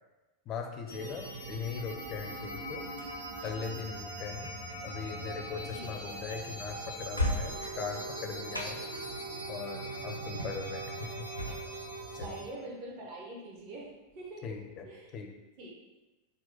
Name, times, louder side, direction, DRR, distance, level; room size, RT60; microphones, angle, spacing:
voice 1, 0.5-2.8 3.4-4.5 4.8-8.8 9.5-11.3 12.1-12.3 14.4-14.9 15.1-15.3, left 6 dB, 35° left, 4 dB, 0.5 m, -40 dB
sound 1, 0.9-12.5, right 1 dB, 85° right, 1.4 m, -42 dB
sound 2, 2.3-12.3, left 1 dB, 90° left, 0.4 m, -41 dB
Wind instrument woodwind instrument, 7.5-12.6, right 6 dB, 70° right, 0.3 m, -45 dB
voice 2, 12.2-14.5 14.8-15.1 15.6-15.7, right 1 dB, 45° right, -2 dB, 0.8 m, -44 dB
3.9 x 2.1 x 4.0 m, 1.1 s
figure-of-eight pair, 90°, 0 cm